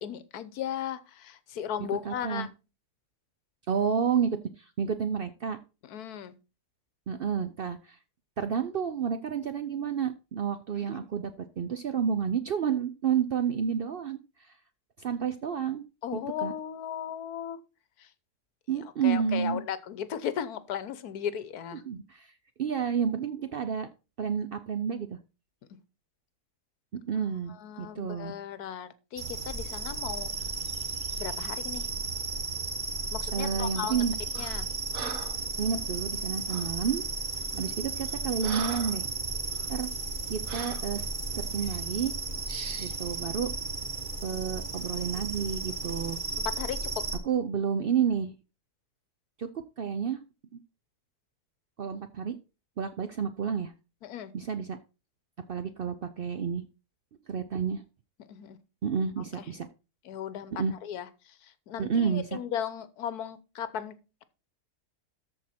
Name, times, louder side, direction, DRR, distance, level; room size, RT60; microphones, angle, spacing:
voice 1, 0.0-2.5 5.8-6.3 16.0-17.6 18.0-18.1 18.7-21.8 27.2-30.3 31.2-31.9 33.1-34.0 34.3-34.7 37.5-37.7 46.4-47.1 54.0-54.3 58.3-58.6 59.4-59.5 60.0-60.5 60.8-64.0, left 9 dB, 70° left, 14 dB, 1.3 m, -36 dB
voice 2, 2.0-2.5 3.7-5.6 7.1-8.0 8.4-14.5 15.0-15.8 16.4-16.5 18.7-19.6 21.7-22.3 22.6-23.9 24.2-25.2 26.9-28.3 33.3-34.1 35.6-37.0 37.6-39.0 39.7-39.9 40.3-41.1 41.3-42.1 42.8-43.5 44.2-46.2 47.2-48.3 49.4-49.5 49.8-50.2 51.8-52.4 52.8-53.7 54.3-54.8 55.5-56.6 57.3-57.8 58.8-59.7 60.6-60.7 61.8-62.4, right 7 dB, 75° right, 10 dB, 0.5 m, -30 dB
sound 1, 29.2-47.2, right 3 dB, 30° right, 1.3 m, -34 dB
Breathing, 34.3-34.6 34.9-35.4 36.5-36.8 37.4-37.6 38.0-39.1 39.5-39.7 40.5-40.9 41.6-41.8 42.5-43.0, right 6 dB, 60° right, 1.4 m, -40 dB
13.5 x 4.5 x 4.2 m, 0.30 s
omnidirectional pair, 1.7 m